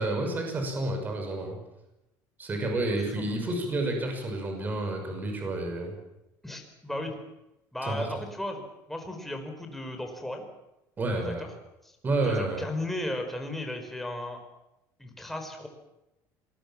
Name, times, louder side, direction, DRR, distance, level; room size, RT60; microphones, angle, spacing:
voice 1, 0.0-1.6 2.4-5.9 7.8-8.1 11.0-11.4 12.0-12.6, right 2 dB, 25° right, 4 dB, 6.1 m, -30 dB
voice 2, 2.9-3.7 6.4-7.1 7.7-10.4 11.1-11.5 11.8-11.9 12.2-14.4 15.0-15.7, left 1 dB, 5° left, 4 dB, 4.6 m, -36 dB
26.0 x 20.5 x 7.4 m, 0.92 s
cardioid pair, 145°, 8 cm